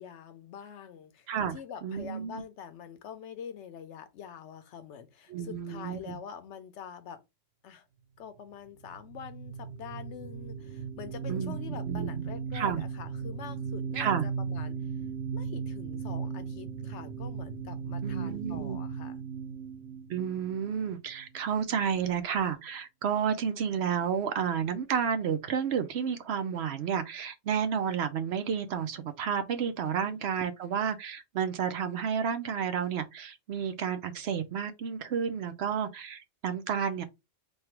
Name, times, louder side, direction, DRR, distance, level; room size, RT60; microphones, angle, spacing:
voice 1, 0.0-7.2 7.6-7.9 8.2-14.9 15.3-19.2 30.0-30.2, left 8 dB, 70° left, 0.9 m, -45 dB
voice 2, 1.8-2.4 5.3-6.2 11.3-11.5 11.9-12.3 12.5-12.8 13.9-14.3 18.0-18.8 20.1-37.0, right 7 dB, 65° right, 0.8 m, -31 dB
sound 1, 8.8-21.3, right 6 dB, 90° right, 1.0 m, -37 dB
3.3 x 2.3 x 4.3 m
omnidirectional pair, 1.3 m